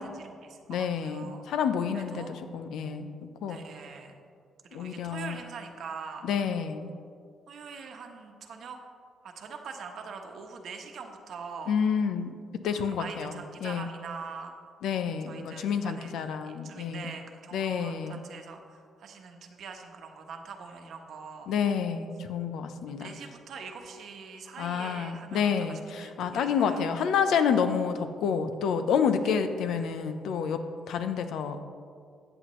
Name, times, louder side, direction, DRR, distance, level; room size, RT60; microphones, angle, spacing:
voice 1, 0.0-1.4 1.9-2.4 3.5-4.1 4.6-6.3 7.5-8.8 9.2-11.7 12.7-14.5 15.3-21.5 22.9-26.8 29.2-29.4, right 5 dB, 65° right, 4 dB, 1.1 m, -43 dB
voice 2, 0.7-3.1 3.4-3.6 4.7-5.4 6.2-6.9 11.7-12.3 12.6-13.9 14.8-17.1 17.5-18.2 21.5-23.1 24.6-31.6, left 7 dB, 80° left, 9 dB, 0.7 m, -29 dB
14.0 x 8.0 x 3.1 m, 2.2 s
cardioid pair, 90°, 0 cm